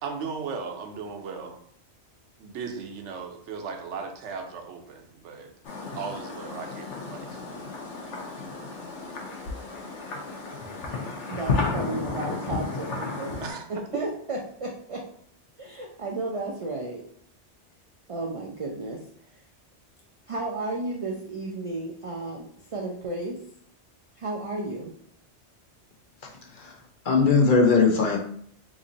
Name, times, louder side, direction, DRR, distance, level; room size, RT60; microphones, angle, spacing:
voice 1, 0.0-1.6 2.4-5.5 5.9-7.4 13.4-13.6 13.9-14.0, right 5 dB, 85° right, 3 dB, 1.0 m, -36 dB
sound 1, 5.6-13.5, left 4 dB, 90° left, 1.0 m, -33 dB
voice 2, 11.3-13.4 13.7-15.0 15.6-17.0 18.1-19.4 20.3-23.4 24.2-24.9, right 2 dB, 60° right, -1 dB, 0.3 m, -33 dB
voice 3, 26.5-26.8 27.0-28.2, left 4 dB, 55° left, 1 dB, 0.7 m, -20 dB
3.0 x 2.5 x 3.8 m, 0.63 s
omnidirectional pair, 1.2 m